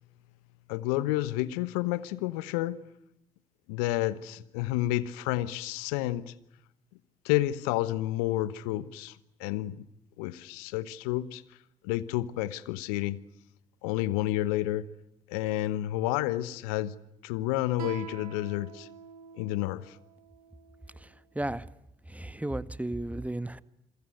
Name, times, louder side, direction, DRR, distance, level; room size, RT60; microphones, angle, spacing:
voice 1, 0.7-2.8 3.7-6.3 7.2-9.8 10.2-11.4 11.8-13.2 13.8-14.9 15.3-16.9 17.2-18.9 19.4-20.0, left 15 dB, 80° left, 1.1 m, -30 dB
Guitar, 17.8-21.0, right 8 dB, 85° right, 2.8 m, -45 dB
voice 2, 21.0-21.6 22.1-23.6, right 1 dB, 10° right, 1.6 m, -34 dB
27.5 x 22.5 x 9.3 m
hypercardioid pair, 50°, 19 cm